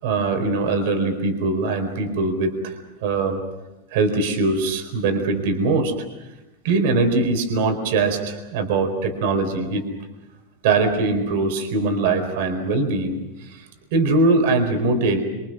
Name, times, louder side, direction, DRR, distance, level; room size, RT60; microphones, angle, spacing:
voice 1, 0.0-2.7 3.0-3.4 3.9-6.0 6.6-9.9 10.6-13.7 13.9-15.2, right 3 dB, 60° right, 6 dB, 4.4 m, -21 dB
27.0 x 26.5 x 6.3 m, 1.0 s
supercardioid pair, 160°, 0 cm